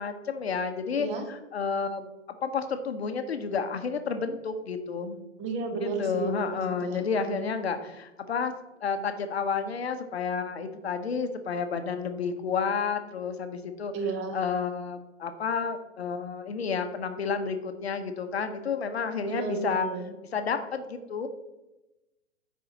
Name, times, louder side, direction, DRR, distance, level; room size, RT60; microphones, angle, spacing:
voice 1, 0.0-2.1 2.4-5.2 5.8-8.5 8.8-13.9 14.3-19.9 20.3-21.3, left 5 dB, 55° left, 8 dB, 0.9 m, -31 dB
voice 2, 5.4-7.5 13.9-14.4 19.2-20.1, right 4 dB, 15° right, 5 dB, 0.8 m, -33 dB
9.5 x 4.7 x 4.1 m, 1.0 s
figure-of-eight pair, 120°, 39 cm